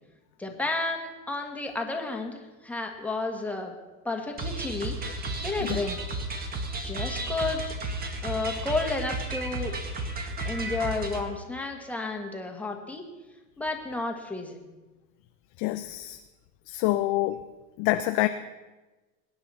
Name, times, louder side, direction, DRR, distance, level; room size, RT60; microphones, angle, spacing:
voice 1, 0.4-3.7 4.0-5.0 5.4-6.0 6.8-7.6 8.2-9.7 10.4-13.1 13.6-14.7, left 3 dB, 5° left, 2 dB, 1.6 m, -32 dB
sound 1, 4.4-11.2, right 2 dB, 20° right, 1.6 m, -33 dB
voice 2, 15.6-16.2 16.7-17.4 17.8-18.3, left 16 dB, 35° left, 9 dB, 0.4 m, -26 dB
22.0 x 9.6 x 4.2 m, 1.2 s
supercardioid pair, 135°, 43 cm